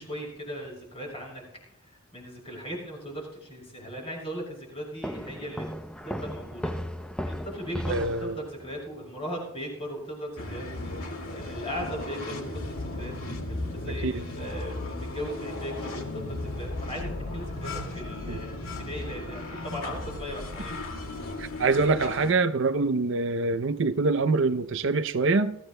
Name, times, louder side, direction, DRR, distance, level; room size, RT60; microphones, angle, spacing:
voice 1, 0.0-1.4 2.1-5.7 6.0-6.8 7.3-10.7 11.3-20.8, equal, 25° left, 6.2 m, -38 dB
sound 1, 5.0-8.7, equal, 5° left, 0.5 m, -35 dB
voice 2, 7.9-8.3 14.0-14.2 18.3-18.4 21.4-25.6, right 3 dB, 55° right, 0.5 m, -25 dB
sound 2, 10.4-22.3, left 2 dB, 80° left, 2.2 m, -35 dB
22.5 x 14.5 x 2.2 m
head